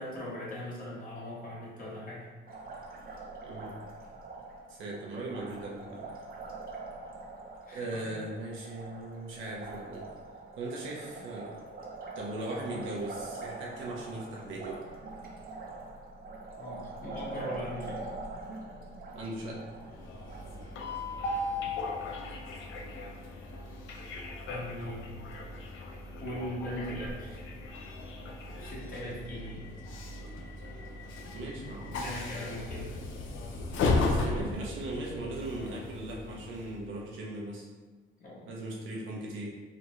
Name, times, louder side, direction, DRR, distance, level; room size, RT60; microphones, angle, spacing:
voice 1, 0.0-2.3 7.7-8.2 16.6-18.1 24.5-25.2 26.2-27.5 28.6-29.7 31.5-32.9 35.5-35.6 38.2-38.4, left 1 dB, 45° left, -7 dB, 1.4 m, -40 dB
Liquid, 2.5-22.0, right 3 dB, 50° right, 0.6 m, -44 dB
voice 2, 3.4-3.7 4.7-6.1 7.7-10.1 10.5-11.6 12.1-14.8 19.1-19.6 31.3-32.0 34.0-37.7 38.5-39.5, right 2 dB, 90° right, -3 dB, 0.8 m, -38 dB
Train, 19.7-37.0, left 3 dB, 80° left, 0.5 m, -36 dB
3.8 x 2.2 x 3.0 m, 1.3 s
cardioid pair, 90°, 20 cm